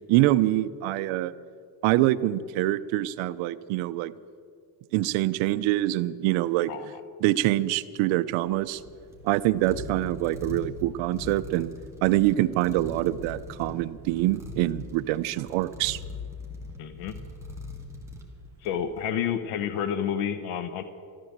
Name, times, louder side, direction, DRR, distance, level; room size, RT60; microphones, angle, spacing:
voice 1, 0.0-1.3 1.8-4.1 4.9-6.7 7.2-8.8 9.2-11.7 12.0-16.0, right 15 dB, 70° right, 13 dB, 0.7 m, -25 dB
voice 2, 6.7-7.0 16.8-17.2 18.6-20.8, left 8 dB, 85° left, 11 dB, 1.0 m, -30 dB
sound 1, 8.3-18.9, left 2 dB, 5° right, 2.1 m, -41 dB
14.0 x 12.5 x 7.4 m, 2.3 s
cardioid pair, 145°, 48 cm